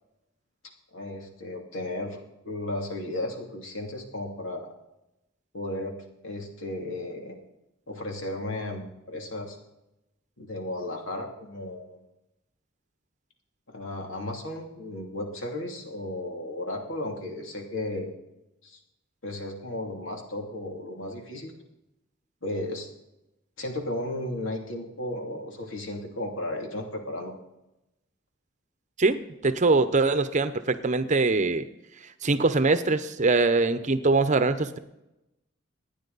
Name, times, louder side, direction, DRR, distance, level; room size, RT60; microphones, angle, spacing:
voice 1, 0.9-4.7 5.5-5.9 6.2-7.4 7.9-9.6 10.4-12.0 13.7-18.1 18.6-18.8 19.2-21.5 22.4-22.9 23.6-27.3, left 1 dB, 75° left, 2 dB, 2.8 m, -34 dB
voice 2, 29.0-31.7 32.2-34.8, right 3 dB, 40° right, 11 dB, 0.8 m, -23 dB
27.0 x 10.0 x 4.1 m, 0.92 s
head